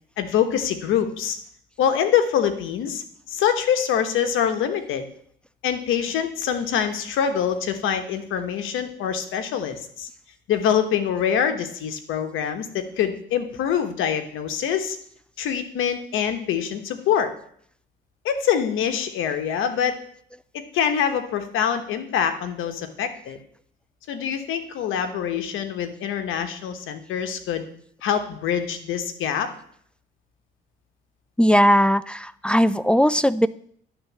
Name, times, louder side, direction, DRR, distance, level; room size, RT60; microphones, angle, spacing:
voice 1, 0.2-1.4 1.8-5.1 5.6-10.1 10.5-15.0 15.4-17.3 18.2-20.0 20.5-23.4 24.1-27.6 28.0-29.5, left 8 dB, 85° left, 7 dB, 1.1 m, -25 dB
voice 2, 31.4-33.5, equal, 5° left, 16 dB, 0.3 m, -18 dB
11.0 x 3.9 x 7.2 m, 0.62 s
cardioid pair, 90°, 20 cm